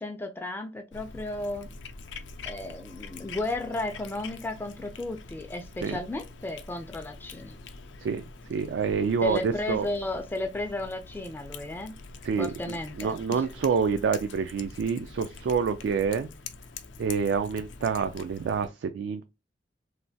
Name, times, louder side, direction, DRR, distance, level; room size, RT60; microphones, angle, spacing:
voice 1, 0.0-1.7 2.4-7.6 9.2-12.0 12.4-13.4, left 2 dB, 10° left, 0.3 m, -34 dB
Cat, 0.9-18.7, left 4 dB, 80° left, 0.5 m, -45 dB
voice 2, 8.5-9.9 12.2-16.3 17.0-19.2, right 6 dB, 70° right, 0.3 m, -27 dB
3.1 x 2.2 x 2.6 m
head